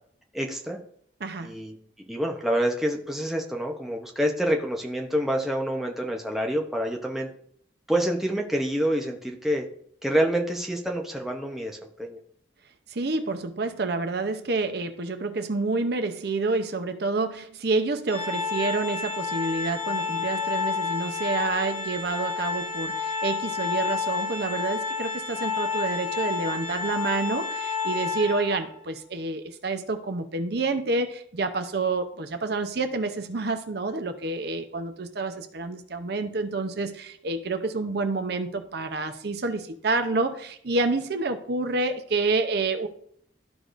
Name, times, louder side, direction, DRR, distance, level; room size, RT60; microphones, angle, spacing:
voice 1, 0.3-0.8 1.4-1.8 2.1-7.3 7.9-9.7 10.0-12.2, equal, ahead, 1 dB, 0.8 m, -27 dB
voice 2, 1.2-1.5 12.9-42.9, right 3 dB, 60° right, 8 dB, 0.7 m, -28 dB
Organ, 18.1-28.8, left 5 dB, 40° left, 2.0 m, -30 dB
13.0 x 4.8 x 2.5 m, 0.63 s
head